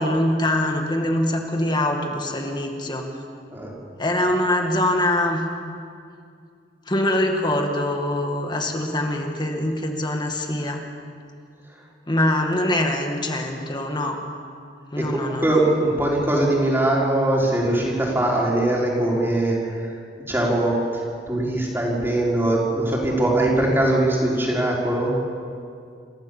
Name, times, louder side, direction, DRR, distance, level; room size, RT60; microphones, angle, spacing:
voice 1, 0.0-3.1 4.0-5.4 6.9-10.8 12.1-14.2 14.9-15.6, left 1 dB, 25° left, 3 dB, 2.0 m, -23 dB
voice 2, 15.0-19.9 20.3-21.0 21.3-25.1, right 1 dB, 15° right, -4 dB, 4.6 m, -21 dB
27.5 x 15.0 x 7.3 m, 2.3 s
head